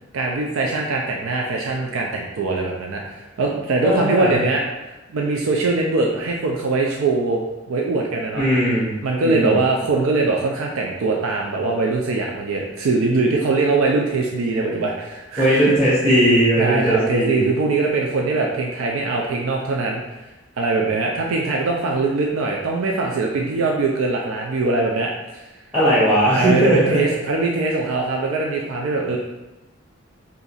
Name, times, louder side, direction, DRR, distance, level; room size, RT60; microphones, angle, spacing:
voice 1, 0.1-8.5 9.0-15.7 16.6-20.0 20.6-25.4 26.4-29.2, right 3 dB, 85° right, -1 dB, 0.4 m, -22 dB
voice 2, 3.8-4.4 8.3-8.9 9.2-9.6 15.4-17.5 25.7-27.0, right 1 dB, 5° right, -9 dB, 0.8 m, -18 dB
2.8 x 2.5 x 4.0 m, 1.0 s
head